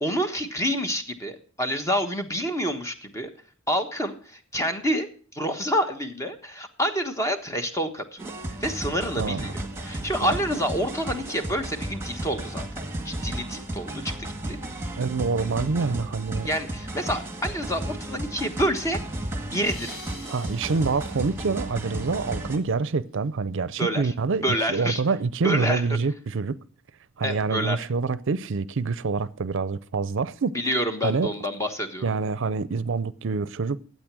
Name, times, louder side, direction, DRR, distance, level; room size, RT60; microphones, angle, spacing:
voice 1, 0.0-3.3 3.7-12.7 13.0-14.6 16.4-19.0 19.5-20.0 23.8-24.1 24.4-25.0 25.4-25.9 27.2-27.8 30.5-32.1, equal, 15° left, 1.2 m, -28 dB
sound 1, 8.2-22.6, right 1 dB, 15° right, 1.8 m, -34 dB
voice 2, 9.2-9.5 10.2-10.4 15.0-16.5 20.3-26.6 27.2-30.5 31.0-31.3 32.0-33.8, right 4 dB, 65° right, 0.5 m, -26 dB
sound 2, 19.6-22.7, left 2 dB, 75° left, 6.7 m, -47 dB
12.5 x 8.5 x 6.1 m
head